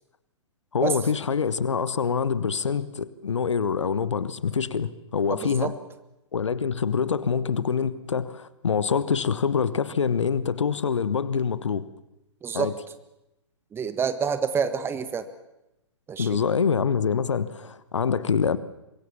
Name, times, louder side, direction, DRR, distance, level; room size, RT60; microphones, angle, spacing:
voice 1, 0.7-5.7 6.3-11.9 12.5-12.7 16.2-18.6, left 6 dB, 70° left, 16 dB, 1.3 m, -25 dB
voice 2, 5.3-5.7 12.4-12.7 13.7-15.3 16.1-16.4, right 6 dB, 15° right, 12 dB, 1.5 m, -27 dB
25.0 x 21.5 x 7.2 m, 0.91 s
figure-of-eight pair, 120°, 16 cm